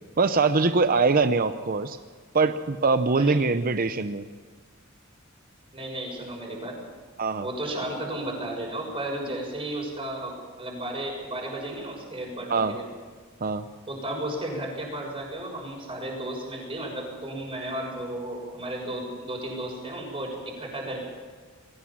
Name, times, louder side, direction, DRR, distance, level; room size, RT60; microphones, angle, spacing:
voice 1, 0.2-2.0 2.3-4.3 7.2-7.5 12.5-12.7 13.4-13.7, right 4 dB, 45° right, 10 dB, 0.7 m, -23 dB
voice 2, 5.7-6.8 7.4-12.9 13.9-21.0, right 1 dB, 25° right, -1 dB, 6.6 m, -34 dB
21.0 x 17.5 x 7.4 m, 1.5 s
head